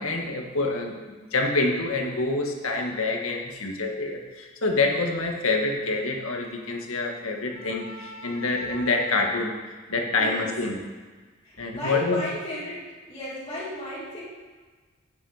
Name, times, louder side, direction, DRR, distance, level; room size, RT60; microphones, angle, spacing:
voice 1, 0.0-10.8 11.6-12.2, left 3 dB, 85° left, 1 dB, 1.8 m, -27 dB
voice 2, 11.4-12.8 13.1-14.2, equal, 25° left, -10 dB, 2.5 m, -34 dB
11.0 x 9.2 x 5.1 m, 1.4 s
head